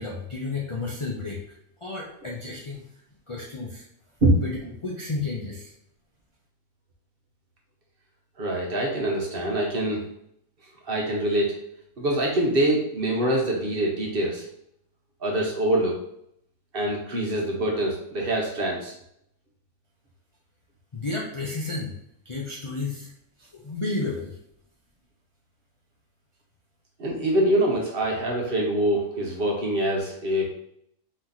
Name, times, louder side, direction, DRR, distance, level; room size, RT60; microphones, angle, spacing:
voice 1, 0.0-1.4 1.8-2.8 3.3-3.8 4.4-4.5 4.8-5.7 20.9-21.9 22.2-23.1 23.4-24.4, left 3 dB, 35° left, -4 dB, 0.5 m, -32 dB
voice 2, 8.4-10.0 10.9-11.5 12.0-14.4 15.2-16.0 16.7-18.9 27.0-30.4, right 1 dB, 45° right, -1 dB, 1.1 m, -24 dB
4.2 x 3.0 x 3.9 m, 0.72 s
omnidirectional pair, 1.4 m